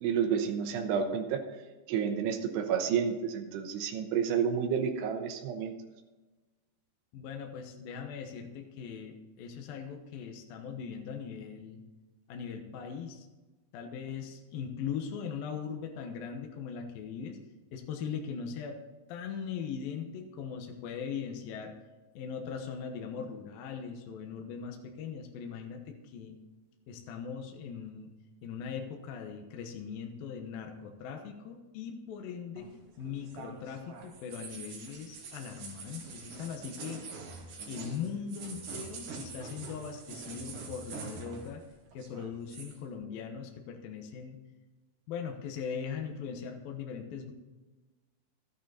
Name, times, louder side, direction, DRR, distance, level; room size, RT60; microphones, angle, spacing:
voice 1, 0.0-1.4 1.9-5.7, right 7 dB, 85° right, 4 dB, 3.1 m, -30 dB
voice 2, 7.1-11.8 12.3-13.3 13.7-17.4 17.7-18.8 19.1-21.8 22.1-26.4 26.9-28.1 28.4-37.0 37.7-41.6 41.9-44.4 45.1-47.3, left 7 dB, 70° left, 3 dB, 2.7 m, -40 dB
sound 1, 32.6-41.7 41.9-42.8, right 4 dB, 60° right, 3.0 m, -45 dB
13.0 x 9.1 x 4.1 m, 1.2 s
omnidirectional pair, 4.7 m